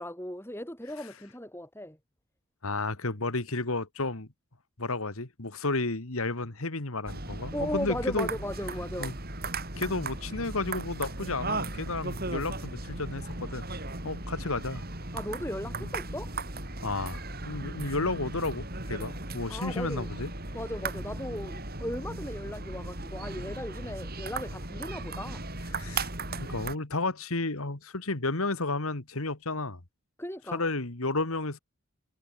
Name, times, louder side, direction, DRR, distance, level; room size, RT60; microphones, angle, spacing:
voice 1, 0.0-2.0 7.5-9.1 15.1-16.3 19.5-20.1 20.5-25.4 30.2-30.6, left 1 dB, 10° left, 6.9 m, -37 dB
voice 2, 2.6-4.3 4.8-8.3 9.0-9.2 9.7-13.6 14.0-14.8 15.8-15.9 16.8-20.3 25.7-26.1 26.4-29.8 30.5-31.6, left 3 dB, 70° left, 2.2 m, -32 dB
sound 1, 7.1-26.8, right 2 dB, 40° right, 7.8 m, -37 dB
head